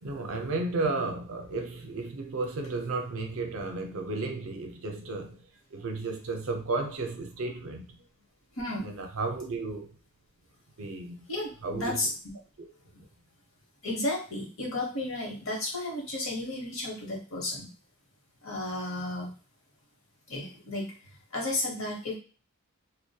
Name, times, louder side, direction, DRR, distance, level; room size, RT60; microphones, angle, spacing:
voice 1, 0.0-5.4 5.7-8.0 8.8-9.9 10.8-12.1 13.0-13.1, right 3 dB, 65° right, 0.5 m, -33 dB
voice 2, 8.6-8.9 11.3-12.1 13.8-17.7 18.4-19.3 20.3-20.9 21.3-22.1, left 2 dB, 60° left, 0.9 m, -33 dB
2.2 x 2.1 x 2.7 m
head